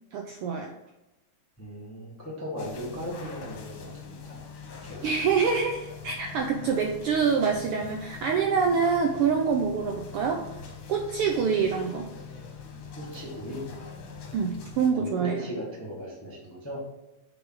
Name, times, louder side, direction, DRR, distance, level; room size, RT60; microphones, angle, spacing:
voice 1, 0.1-0.7 5.0-10.5 10.9-12.1 14.3-15.4, right 6 dB, 85° right, 3 dB, 1.3 m, -26 dB
voice 2, 1.6-4.4 4.8-5.1 12.9-13.6 14.9-16.8, equal, 10° left, -4 dB, 1.1 m, -38 dB
sound 1, 2.6-14.9, left 5 dB, 90° left, 2.7 m, -43 dB
8.1 x 4.1 x 4.7 m, 0.98 s
omnidirectional pair, 3.3 m